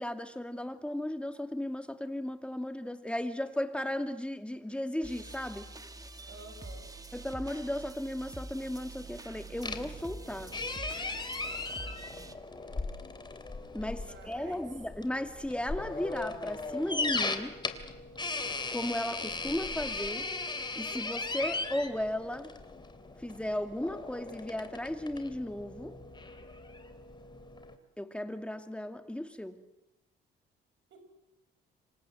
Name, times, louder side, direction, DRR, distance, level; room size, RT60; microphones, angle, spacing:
voice 1, 0.0-5.7 7.1-10.6 13.7-17.6 18.7-20.3 20.7-22.5 23.2-26.0 28.0-29.6, left 1 dB, 5° left, 7 dB, 2.4 m, -35 dB
sound 1, 5.0-12.3, right 2 dB, 20° right, 2.1 m, -46 dB
voice 2, 6.3-6.9 13.9-14.6 30.9-31.1, right 4 dB, 70° right, 7 dB, 7.1 m, -51 dB
sound 2, 9.6-27.7, left 3 dB, 20° left, 3.1 m, -38 dB
27.0 x 25.0 x 7.9 m, 0.92 s
cardioid pair, 90°, 20 cm